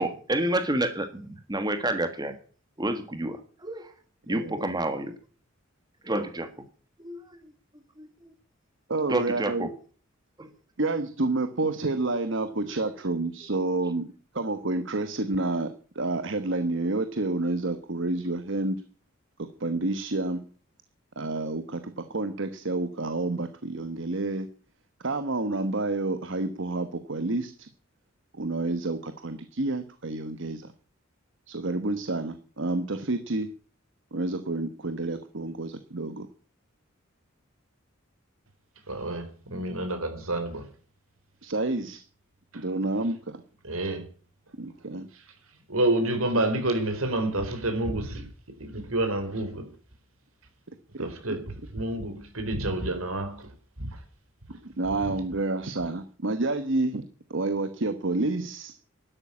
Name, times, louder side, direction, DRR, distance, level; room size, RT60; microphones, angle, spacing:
voice 1, 0.0-2.3 2.8-3.9 4.3-5.1 6.0-6.5 7.0-7.4 8.0-8.1 9.0-9.7 10.4-10.5 13.4-13.5, right 1 dB, 20° right, 1.5 m, -29 dB
voice 2, 4.3-4.7 8.9-9.7 10.8-18.8 19.4-20.4 21.2-24.5 25.0-27.7 28.3-30.7 31.5-33.5 34.1-36.3 41.4-42.0 42.5-43.4 44.6-45.1 51.0-51.1 51.6-51.7 54.8-58.7, right 2 dB, 60° right, 1.2 m, -29 dB
voice 3, 38.9-40.7 42.5-42.6 43.6-44.1 45.1-45.2 45.7-48.2 48.6-49.7 51.0-53.5 53.8-54.0, right 1 dB, 85° right, 4.3 m, -29 dB
12.5 x 11.5 x 8.5 m
head